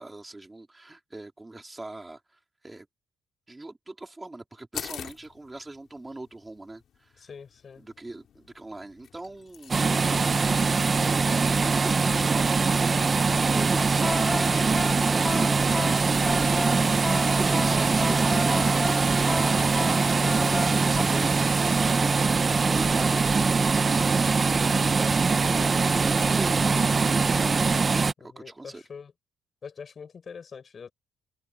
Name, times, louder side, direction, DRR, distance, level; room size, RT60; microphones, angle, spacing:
voice 1, 0.0-2.2 2.6-2.9 3.5-7.3 7.8-10.0 10.9-12.6 13.1-15.7 16.2-23.7 25.8-27.7 28.2-28.8, right 2 dB, 15° right, 4.0 m, -41 dB
sound 1, 4.7-14.3, left 9 dB, 65° left, 3.3 m, -47 dB
voice 2, 7.2-7.8 28.2-29.1 29.6-30.9, left 6 dB, 45° left, 5.8 m, -44 dB
sound 2, 9.7-28.1, right 4 dB, 35° right, 1.0 m, -23 dB
sound 3, 13.7-21.0, left 2 dB, 15° left, 4.7 m, -34 dB
cardioid pair, 90°, 0 cm